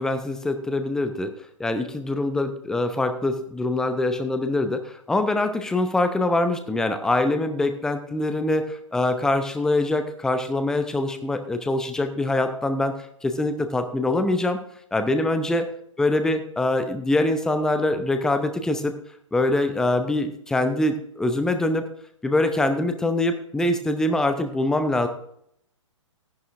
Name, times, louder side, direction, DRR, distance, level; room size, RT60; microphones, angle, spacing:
voice 1, 0.0-1.3 1.6-12.9 13.2-14.6 14.9-15.6 16.0-18.9 19.3-21.8 22.2-25.1, left 2 dB, 5° left, 8 dB, 0.7 m, -24 dB
14.0 x 10.5 x 2.5 m, 0.71 s
figure-of-eight pair, 120°, 16 cm